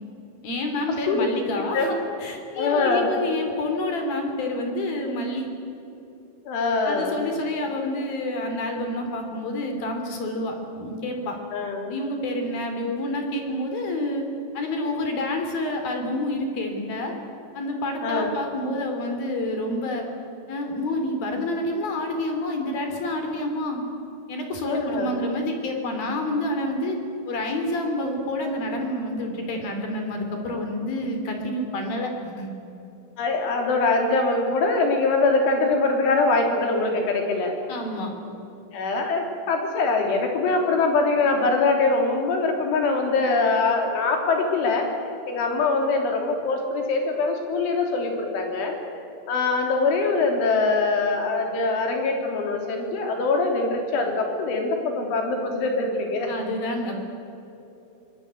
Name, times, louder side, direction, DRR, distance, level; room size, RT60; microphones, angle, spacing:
voice 1, 0.4-5.5 6.9-11.4 11.9-14.2 14.5-17.2 17.5-20.1 20.5-23.8 24.3-27.0 27.3-32.5 37.7-38.1 56.3-57.0, left 1 dB, 55° left, 4 dB, 4.6 m, -28 dB
voice 2, 1.6-1.9 2.6-3.2 6.5-7.3 11.5-12.0 18.0-18.4 24.7-25.1 33.2-37.5 38.7-44.9 45.3-48.9 49.3-56.3, left 3 dB, 85° left, 3 dB, 5.8 m, -23 dB
24.0 x 21.0 x 8.2 m, 2.9 s
omnidirectional pair, 5.3 m